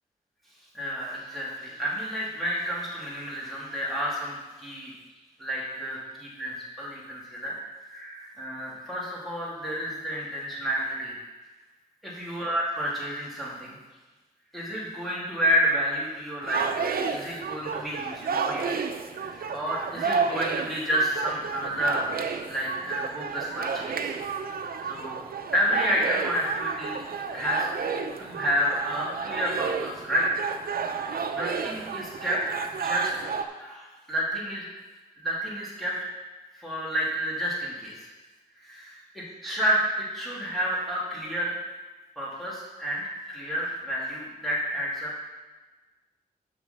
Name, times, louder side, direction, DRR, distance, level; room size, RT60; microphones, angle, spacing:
voice 1, 0.7-4.9 5.4-7.5 7.8-11.1 12.0-13.8 14.5-16.7 17.1-18.8 19.1-22.1 22.4-24.2 24.8-25.2 25.5-27.0 27.3-27.7 28.2-30.3 31.0-33.1 33.6-34.6 35.2-36.0 36.5-38.1 38.6-41.6 42.2-45.2, equal, ahead, -7 dB, 2.8 m, -30 dB
sound 1, 16.4-33.4, right 5 dB, 80° right, 0.6 m, -31 dB
6.8 x 6.5 x 5.3 m, 1.2 s
wide cardioid pair, 110°, 15 cm